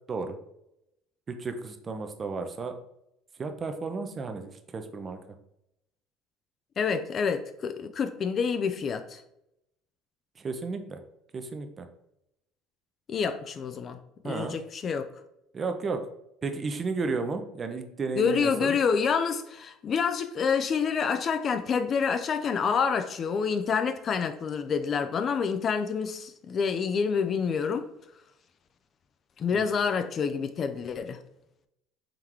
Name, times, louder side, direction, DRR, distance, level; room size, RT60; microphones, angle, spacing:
voice 1, 1.3-2.7 3.4-5.2 10.4-11.0 11.3-11.9 14.2-14.6 15.5-16.0 16.4-18.8 29.5-29.7, right 4 dB, 30° right, 6 dB, 0.5 m, -33 dB
voice 2, 6.8-9.2 13.1-14.0 14.2-15.1 18.2-27.9 29.4-31.2, left 6 dB, 40° left, 9 dB, 0.3 m, -27 dB
3.7 x 3.4 x 2.9 m, 0.81 s
supercardioid pair, 90°, 0 cm